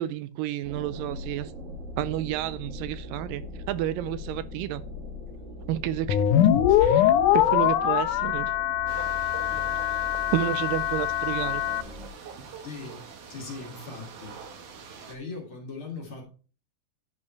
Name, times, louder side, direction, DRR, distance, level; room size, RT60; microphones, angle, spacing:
voice 1, 0.0-1.5 2.0-3.4 3.7-4.9 5.7-6.2 6.8-8.5 10.3-11.6, right 13 dB, 85° right, 2.1 m, -30 dB
sound 1, 0.6-12.1, left 2 dB, 35° right, 1.3 m, -41 dB
sound 2, 6.1-11.8, left 11 dB, 75° left, 2.0 m, -23 dB
sound 3, 8.9-15.2, right 6 dB, 65° right, 2.8 m, -44 dB
voice 2, 12.6-14.4 15.1-16.2, left 4 dB, 40° left, 2.7 m, -40 dB
10.5 x 5.4 x 4.5 m
omnidirectional pair, 4.0 m